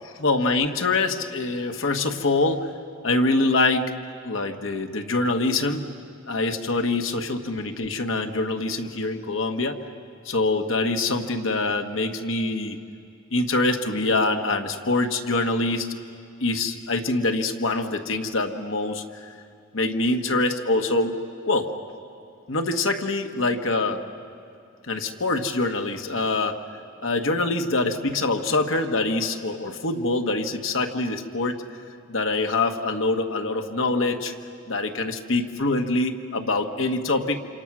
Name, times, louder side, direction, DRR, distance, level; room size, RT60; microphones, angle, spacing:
voice 1, 0.0-2.7 3.0-3.9 4.2-5.9 6.3-9.8 10.2-12.8 13.3-15.9 16.4-19.0 19.7-21.2 21.5-21.7 22.5-24.0 24.9-26.6 27.0-31.6 32.1-34.3 34.7-37.4, left 2 dB, 70° left, 5 dB, 1.4 m, -24 dB
27.0 x 27.0 x 6.1 m, 2.5 s
head